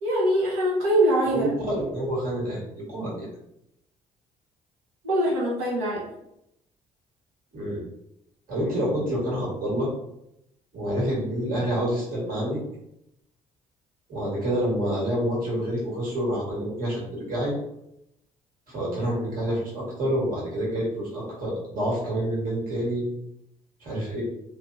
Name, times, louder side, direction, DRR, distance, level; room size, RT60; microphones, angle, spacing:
voice 1, 0.0-1.5 5.0-6.0, right 1 dB, 70° right, -5 dB, 0.9 m, -23 dB
voice 2, 1.9-3.3 7.5-7.8 8.5-9.9 10.7-12.6 14.1-17.5 18.7-23.0 23.8-24.2, equal, 50° right, -5 dB, 1.5 m, -28 dB
2.8 x 2.0 x 2.5 m, 0.80 s
figure-of-eight pair, 45°, 18 cm